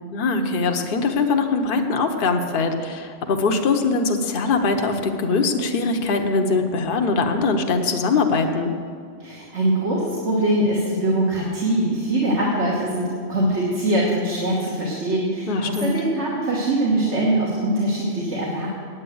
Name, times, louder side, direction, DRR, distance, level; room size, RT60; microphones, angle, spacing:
voice 1, 0.1-8.7 15.5-15.9, left 4 dB, 50° left, 5 dB, 1.0 m, -22 dB
voice 2, 9.2-18.7, right 1 dB, 65° right, -5 dB, 1.9 m, -22 dB
9.0 x 8.9 x 7.8 m, 2.3 s
omnidirectional pair, 1.3 m